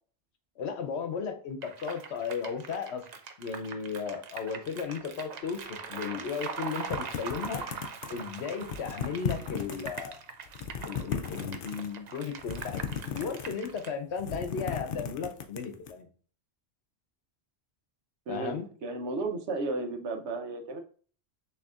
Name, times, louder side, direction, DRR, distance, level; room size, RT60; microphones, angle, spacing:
voice 1, 0.6-3.0 3.4-7.6 8.1-10.3 10.8-12.8 13.1-16.1 18.3-18.7, left 6 dB, 75° left, 7 dB, 1.0 m, -35 dB
sound 1, 1.6-13.9, right 5 dB, 50° right, 0.5 m, -42 dB
sound 2, 6.9-8.3 8.6-10.1 10.5-11.9 12.4-13.8 14.1-15.9, left 7 dB, 60° left, 0.7 m, -35 dB
voice 2, 18.3-20.8, right 3 dB, 85° right, 5 dB, 1.0 m, -34 dB
6.4 x 2.8 x 2.4 m, 0.42 s
omnidirectional pair, 1.1 m